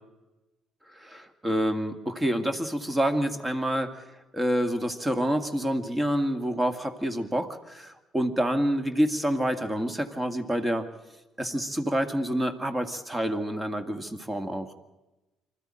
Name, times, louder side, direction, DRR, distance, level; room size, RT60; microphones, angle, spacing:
voice 1, 0.9-4.0 4.3-10.9 11.4-14.7, equal, 15° right, 8 dB, 2.1 m, -28 dB
26.0 x 13.5 x 8.9 m, 1.1 s
figure-of-eight pair, 50°, 0 cm